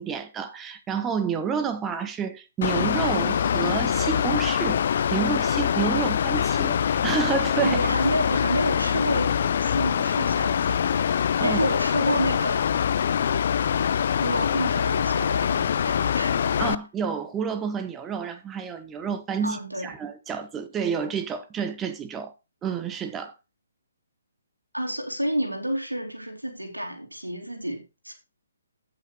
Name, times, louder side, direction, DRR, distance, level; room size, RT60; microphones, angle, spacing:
voice 1, 0.0-4.8 5.1-7.8 11.4-11.6 16.6-22.3 22.6-23.3, right 7 dB, 15° right, 0.9 m, -29 dB
Mechanical fan, 2.6-16.7, left 8 dB, 45° left, 0.4 m, -24 dB
voice 2, 7.6-11.1 11.4-12.6 13.4-13.5 14.2-16.4 19.4-19.9 24.7-28.1, equal, 85° right, 2.7 m, -29 dB
16.0 x 5.8 x 2.8 m
figure-of-eight pair, 135°, 0 cm